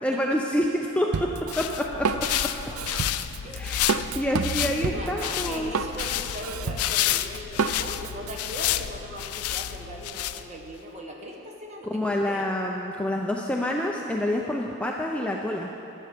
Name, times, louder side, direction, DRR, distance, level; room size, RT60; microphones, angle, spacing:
voice 1, 0.0-1.1 1.6-1.8 3.5-5.7 11.9-15.7, left 1 dB, 5° left, 0 dB, 0.5 m, -27 dB
Drum kit, 1.1-8.3, right 5 dB, 85° right, 0.5 m, -30 dB
sound 1, 1.3-10.8, left 12 dB, 90° left, 0.4 m, -30 dB
voice 2, 4.6-12.5, equal, 30° right, 0 dB, 1.4 m, -39 dB
14.5 x 11.0 x 5.2 m, 2.9 s
head